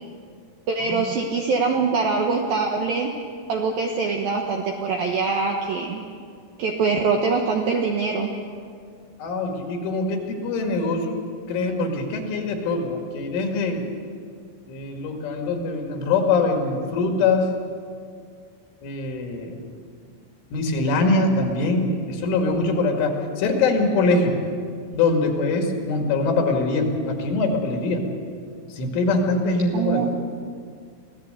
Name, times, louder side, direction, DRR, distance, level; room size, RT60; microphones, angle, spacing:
voice 1, 0.7-3.1 3.5-6.0 6.6-8.3 29.7-30.1, right 4 dB, 70° right, 1 dB, 2.2 m, -23 dB
voice 2, 9.2-11.2 11.5-13.8 14.7-17.5 18.8-19.5 20.5-24.4 24.9-28.1 28.7-30.0, left 3 dB, 70° left, 2 dB, 4.6 m, -23 dB
24.5 x 17.0 x 8.1 m, 2.2 s
omnidirectional pair, 6.0 m